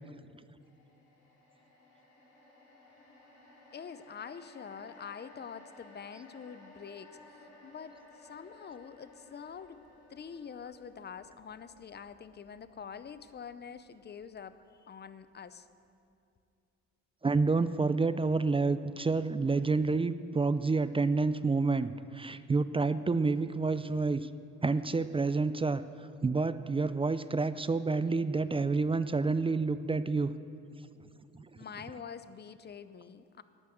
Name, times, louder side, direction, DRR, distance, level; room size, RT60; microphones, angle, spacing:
sound 1, 0.6-14.9 15.3-15.5, left 1 dB, 80° left, 3.1 m, -58 dB
voice 1, 3.7-9.8 10.1-14.6 14.8-15.7 31.6-33.4, left 7 dB, 35° left, 13 dB, 0.6 m, -46 dB
voice 2, 17.2-24.3 24.6-25.8 26.2-30.3 31.3-31.4, right 3 dB, 20° right, 13 dB, 0.4 m, -29 dB
11.5 x 9.7 x 7.8 m, 2.6 s
cardioid pair, 90°, 30 cm